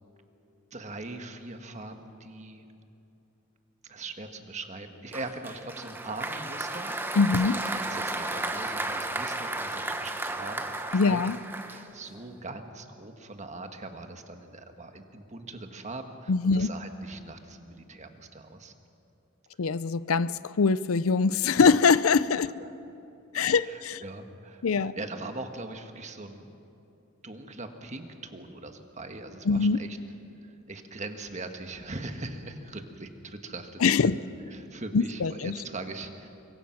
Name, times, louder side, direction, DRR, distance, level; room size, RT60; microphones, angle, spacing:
voice 1, 0.7-2.6 3.8-6.9 7.3-11.2 11.6-18.7 22.6-22.7 23.5-26.5 27.2-30.0 30.4-34.2 34.5-36.3, right 2 dB, 35° right, 6 dB, 1.5 m, -41 dB
Applause, 5.1-12.2, right 2 dB, 10° right, 1.0 m, -34 dB
voice 2, 7.2-7.6 10.9-11.4 16.3-16.7 19.6-22.5 23.3-24.0 24.6-24.9 29.5-29.8 33.8-34.1 34.9-35.5, left 5 dB, 85° left, 16 dB, 0.5 m, -23 dB
25.0 x 23.0 x 5.9 m, 2.8 s
head